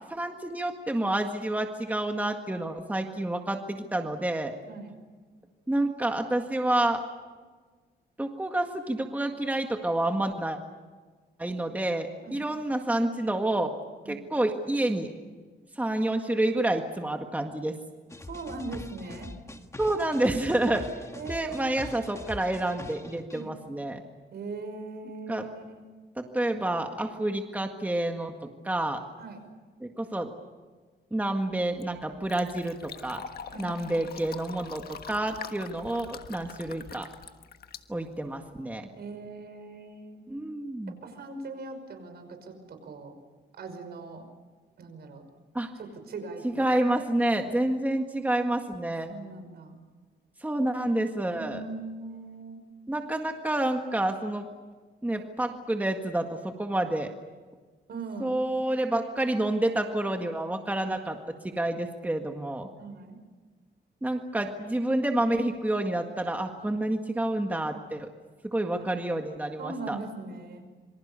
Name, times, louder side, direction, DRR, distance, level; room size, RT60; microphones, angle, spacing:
voice 1, 0.1-4.5 5.7-7.0 8.2-10.6 11.4-13.7 14.1-15.1 15.8-17.7 19.8-20.9 21.3-24.0 25.3-25.5 26.2-29.0 29.8-30.3 31.1-33.2 33.6-37.1 37.9-38.9 40.3-40.9 45.5-45.7 46.4-49.1 50.4-51.6 52.9-54.5 55.0-57.1 58.2-61.2 61.6-62.7 64.0-68.1 68.5-70.0, right 1 dB, 10° right, 4 dB, 1.8 m, -28 dB
sound 1, 18.1-23.4, left 2 dB, 15° left, 1.6 m, -43 dB
voice 2, 18.3-19.3 21.2-21.7 23.3-23.5 24.3-25.8 29.2-29.4 33.5-33.7 39.0-40.2 41.0-43.1 43.5-44.2 44.8-45.3 45.8-46.7 49.1-49.8 51.3-52.6 57.9-58.4 62.8-63.2 69.6-70.7, right 3 dB, 65° right, 7 dB, 5.6 m, -40 dB
Fill (with liquid), 31.5-38.6, left 7 dB, 60° left, 1.4 m, -45 dB
27.0 x 24.5 x 7.0 m, 1.4 s
cardioid pair, 130°, 18 cm